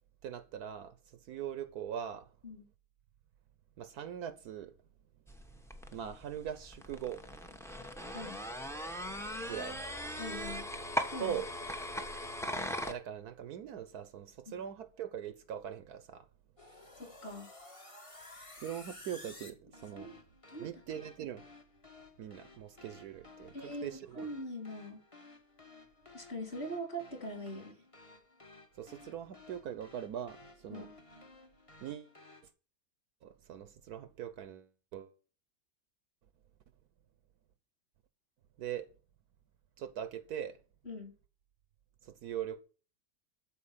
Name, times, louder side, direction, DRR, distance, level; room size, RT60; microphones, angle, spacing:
voice 1, 0.2-1.0 1.3-2.3 3.8-4.7 5.9-7.2 9.5-9.8 11.2-11.5 12.8-16.3 18.6-20.1 20.6-21.4 22.2-24.3 28.8-30.9 31.8-32.1 33.2-35.1 38.6-38.9 39.8-40.6 42.0-42.6, right 9 dB, 70° right, 1.3 m, -41 dB
sound 1, 5.3-12.9, equal, ahead, 0.7 m, -39 dB
voice 2, 10.2-10.6 11.1-11.4 14.5-14.6 17.0-17.5 20.0-20.1 20.5-20.7 23.5-25.0 26.1-27.8 30.7-30.9 40.8-41.1, equal, 40° left, 3.5 m, -42 dB
sound 2, 16.6-32.5, left 2 dB, 20° left, 1.4 m, -55 dB
13.0 x 4.6 x 7.3 m
omnidirectional pair, 1.8 m